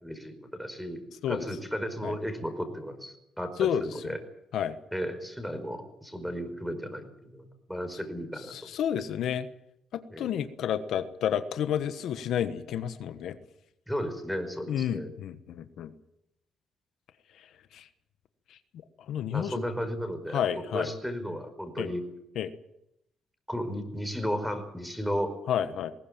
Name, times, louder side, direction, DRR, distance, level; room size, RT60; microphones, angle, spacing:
voice 1, 0.0-4.2 4.9-9.0 10.1-10.3 13.9-15.1 19.3-22.1 23.5-25.3, equal, ahead, 7 dB, 5.1 m, -34 dB
voice 2, 3.6-4.1 4.5-4.8 8.5-9.5 9.9-13.4 14.7-15.9 17.4-17.5 17.7-17.9 18.5-18.6 19.1-19.6 20.3-20.9 21.8-21.9 22.3-22.5 25.5-25.9, left 9 dB, 75° left, 11 dB, 1.3 m, -30 dB
20.5 x 18.0 x 8.9 m, 0.81 s
cardioid pair, 90°, 0 cm